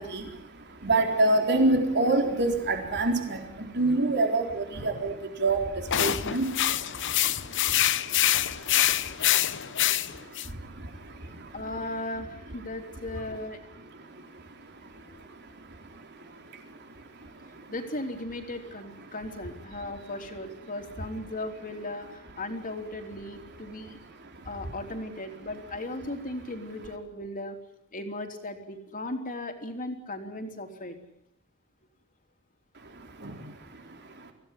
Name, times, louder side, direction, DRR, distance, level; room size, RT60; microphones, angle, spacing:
voice 1, 0.0-11.6 13.9-17.7 19.8-19.9 24.2-24.5 32.7-34.3, right 2 dB, 50° right, 3 dB, 4.1 m, -30 dB
sound 1, 5.9-10.5, left 12 dB, 55° left, 0.9 m, -25 dB
voice 2, 11.5-13.6 15.1-15.2 17.7-24.0 24.4-27.6 27.9-31.0, left 1 dB, 40° left, 5 dB, 3.5 m, -37 dB
25.5 x 16.5 x 9.8 m, 0.78 s
head